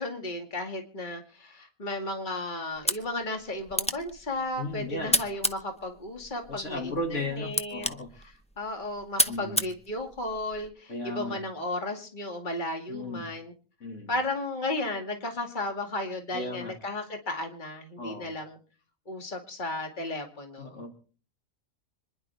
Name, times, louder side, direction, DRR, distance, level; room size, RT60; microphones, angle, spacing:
voice 1, 0.0-13.5 14.1-18.6 19.1-20.8, left 2 dB, 35° left, 3 dB, 2.3 m, -34 dB
sound 1, 2.7-10.7, left 1 dB, 5° left, 0.6 m, -33 dB
voice 2, 4.6-5.2 6.5-8.1 9.3-9.6 10.9-11.4 12.9-13.3 13.8-14.1 16.3-16.7 18.0-18.3 20.6-21.0, left 2 dB, 60° left, 3 dB, 2.5 m, -35 dB
26.5 x 11.0 x 3.5 m, 0.40 s
omnidirectional pair, 1.4 m